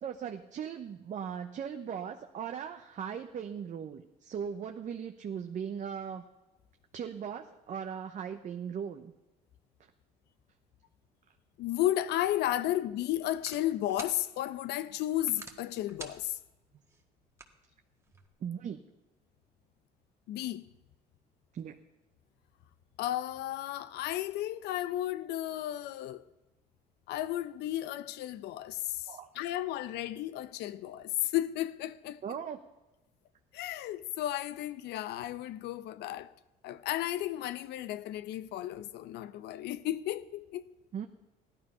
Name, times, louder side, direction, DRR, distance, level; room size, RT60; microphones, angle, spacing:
voice 1, 0.0-6.3 6.9-9.1 18.4-18.8 21.5-21.8 29.1-29.3 32.2-32.6 40.9-41.1, right 8 dB, 45° right, 0.9 m, -38 dB
voice 2, 11.6-16.4 20.3-20.7 23.0-26.2 27.1-32.2 33.5-36.3 36.6-40.7, left 13 dB, 80° left, 0.7 m, -33 dB
sound 1, 12.2-18.3, right 3 dB, 15° right, 1.6 m, -52 dB
15.5 x 12.0 x 5.6 m
cardioid pair, 110°, 17 cm